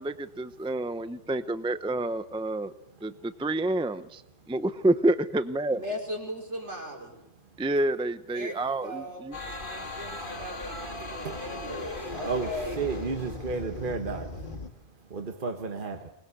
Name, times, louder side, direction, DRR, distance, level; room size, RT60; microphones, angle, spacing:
voice 1, 0.0-2.7 3.0-4.2 4.5-5.8 7.6-9.4, right 1 dB, 5° right, 12 dB, 0.6 m, -28 dB
voice 2, 5.7-7.2 8.3-8.5 8.8-12.9, equal, 75° right, 1 dB, 5.5 m, -38 dB
sound 1, 9.3-14.7, left 2 dB, 45° left, 2.3 m, -37 dB
voice 3, 12.8-14.3 15.1-16.1, right 4 dB, 45° right, 6 dB, 1.5 m, -32 dB
24.0 x 19.5 x 8.3 m, 0.84 s
omnidirectional pair, 1.2 m